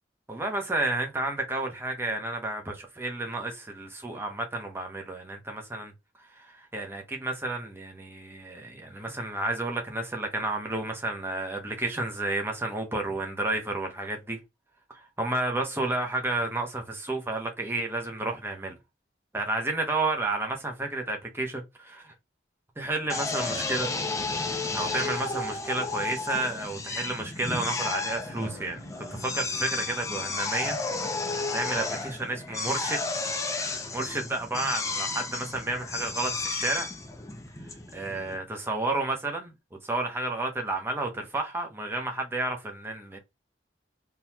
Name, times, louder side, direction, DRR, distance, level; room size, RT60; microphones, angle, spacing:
voice 1, 0.3-5.9 6.2-14.4 14.9-18.8 19.3-22.1 22.8-23.9 24.7-28.8 29.1-30.8 31.5-36.9 37.9-39.5 39.8-43.2, right 2 dB, 15° right, 0.9 m, -31 dB
Drill, 23.1-38.4, left 3 dB, 15° left, 0.6 m, -32 dB
Bass guitar, 28.3-32.4, right 1 dB, 40° right, 1.1 m, -55 dB
3.8 x 3.0 x 2.9 m
head